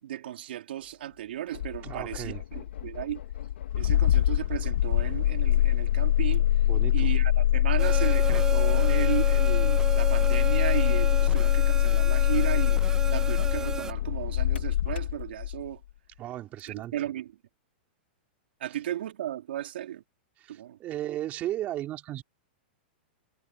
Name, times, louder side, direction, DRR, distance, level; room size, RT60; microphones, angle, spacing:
voice 1, 0.0-3.2 3.7-6.5 6.9-12.8 13.1-15.8 16.7-17.3 18.6-20.0 20.5-20.8, right 12 dB, 75° right, 3.6 m, -35 dB
Engine starting, 1.5-15.7, left 12 dB, 80° left, 1.2 m, -24 dB
voice 2, 1.8-2.4 6.7-7.1 16.2-16.9 20.4-22.2, right 13 dB, 25° right, 3.2 m, -35 dB
sound 1, 7.8-13.9, right 6 dB, 10° right, 0.5 m, -34 dB
supercardioid pair, 155°, 6 cm